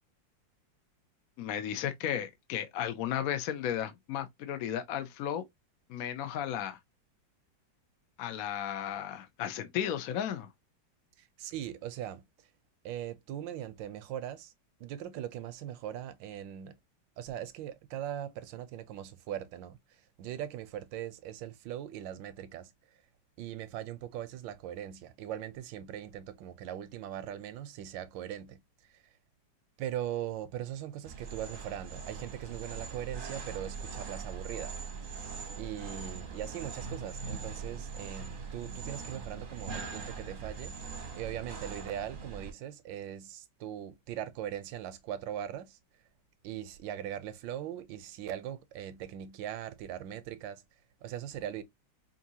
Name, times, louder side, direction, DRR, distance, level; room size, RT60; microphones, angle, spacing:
voice 1, 1.4-5.4 5.9-6.8 8.2-10.5, left 10 dB, 65° left, 0.9 m, -34 dB
voice 2, 11.2-12.2 12.8-14.5 14.8-16.8 17.2-22.7 23.4-28.6 28.9-29.0 29.8-34.7 35.6-40.8 41.1-45.8 46.4-50.6 51.0-51.6, right 11 dB, 80° right, 1.3 m, -40 dB
sound 1, 31.0-42.5, right 5 dB, 40° right, 0.8 m, -41 dB
5.2 x 2.7 x 2.7 m
omnidirectional pair, 2.0 m